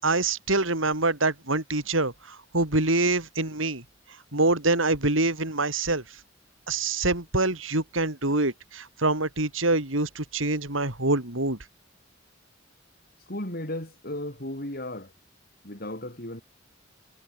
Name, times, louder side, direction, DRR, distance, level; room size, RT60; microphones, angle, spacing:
voice 1, 0.0-3.8 4.3-6.0 6.7-11.6, right 2 dB, 85° right, 4.8 m, -25 dB
voice 2, 13.3-15.1 15.6-16.4, left 1 dB, 50° left, 7.9 m, -35 dB
head